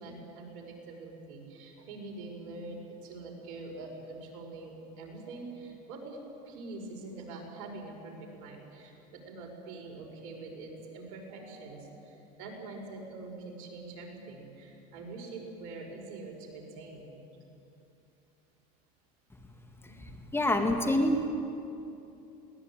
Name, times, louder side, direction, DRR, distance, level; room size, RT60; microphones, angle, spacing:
voice 1, 0.0-6.2 6.4-17.1 19.8-20.0, right 3 dB, 65° right, 1 dB, 6.0 m, -44 dB
voice 2, 19.8-21.3, left 1 dB, 10° left, 5 dB, 2.0 m, -27 dB
22.0 x 18.5 x 9.0 m, 2.8 s
supercardioid pair, 105°, 21 cm